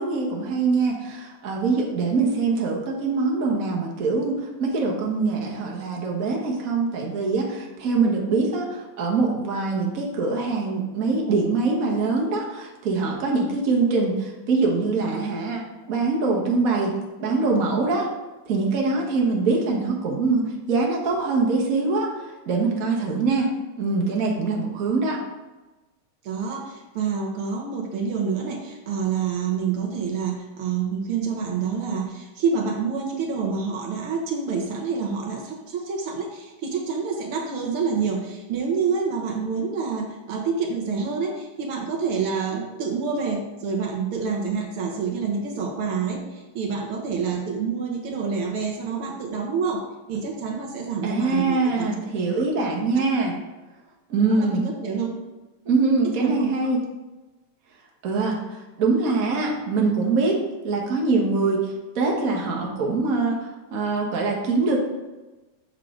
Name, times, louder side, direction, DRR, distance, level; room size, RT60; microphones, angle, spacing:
voice 1, 0.0-18.1 18.5-23.5 23.8-25.2 51.0-53.4 54.1-54.6 55.6-56.8 58.0-64.8, right 3 dB, 45° right, -1 dB, 1.6 m, -23 dB
voice 2, 26.2-51.9 53.0-53.1 54.4-55.1 56.2-56.5, right 5 dB, 80° right, 0 dB, 2.1 m, -27 dB
7.4 x 6.5 x 3.8 m, 1.1 s
omnidirectional pair, 2.4 m